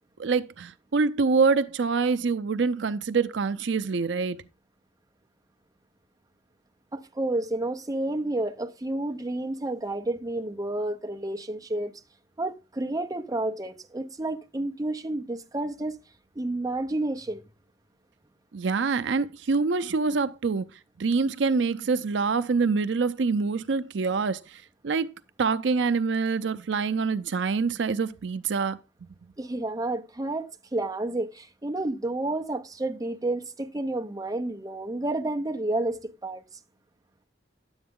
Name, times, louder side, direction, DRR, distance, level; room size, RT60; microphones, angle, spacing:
voice 1, 0.2-4.4 18.5-20.7 21.0-25.1 25.4-28.8, right 4 dB, 75° right, 0.5 m, -25 dB
voice 2, 6.9-12.0 12.4-16.0 16.4-17.4 29.4-36.4, right 2 dB, 20° right, 0.7 m, -30 dB
10.5 x 7.9 x 3.7 m
head